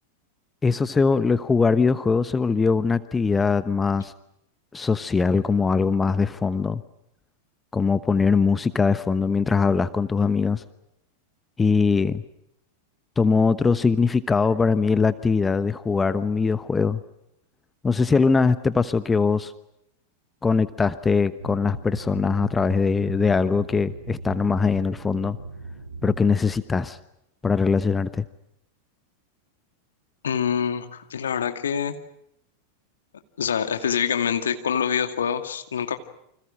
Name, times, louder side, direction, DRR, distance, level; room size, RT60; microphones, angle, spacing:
voice 1, 0.6-4.1 4.7-6.8 7.7-10.6 11.6-12.2 13.2-17.0 17.8-19.5 20.4-25.4 26.0-27.0 27.4-28.2, left 4 dB, 15° left, 14 dB, 1.1 m, -21 dB
sound 1, 21.4-26.4, right 3 dB, 70° right, 2.4 m, -39 dB
voice 2, 30.2-31.9 33.4-36.0, left 7 dB, 65° left, 7 dB, 2.4 m, -25 dB
29.5 x 26.0 x 6.3 m, 0.78 s
figure-of-eight pair, 90°, 0 cm